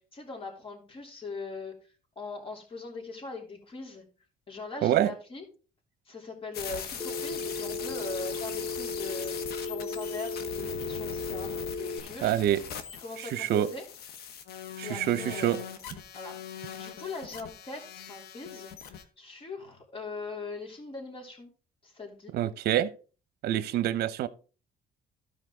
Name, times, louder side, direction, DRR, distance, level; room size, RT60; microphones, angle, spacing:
voice 1, 0.0-4.0 4.5-5.4 6.1-9.3 9.6-12.4 13.0-13.8 14.8-15.8 16.1-21.5 21.8-22.3, left 3 dB, 30° left, 3.1 m, -41 dB
voice 2, 4.8-5.1 12.2-12.6 13.3-13.7 14.8-15.6 22.3-22.9 23.4-24.3, right 12 dB, 70° right, 0.7 m, -26 dB
sound 1, 6.5-19.0, left 8 dB, 70° left, 1.1 m, -41 dB
Telephone, 7.0-12.0, left 3 dB, 15° left, 1.2 m, -35 dB
13.0 x 5.0 x 3.8 m
cardioid pair, 110°, 17 cm